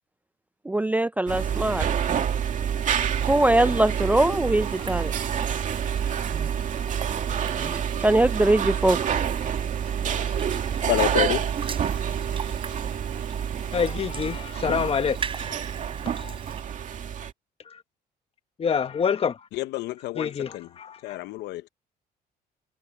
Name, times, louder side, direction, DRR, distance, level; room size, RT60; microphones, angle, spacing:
voice 1, 0.7-1.9 3.2-5.1 6.3-6.5 7.6-9.0, right 1 dB, 10° right, 0.4 m, -22 dB
sound 1, 1.3-17.3, right 8 dB, 50° right, 2.3 m, -28 dB
sound 2, 3.0-16.6, right 6 dB, 30° right, 3.3 m, -42 dB
voice 2, 10.8-11.5 19.5-20.7 21.0-21.7, left 17 dB, 85° left, 0.8 m, -28 dB
voice 3, 13.7-15.2 15.5-15.6 16.2-16.4 17.7-17.8 18.6-19.4 20.2-21.2, left 6 dB, 35° left, 1.4 m, -27 dB
cardioid pair, 110°, 17 cm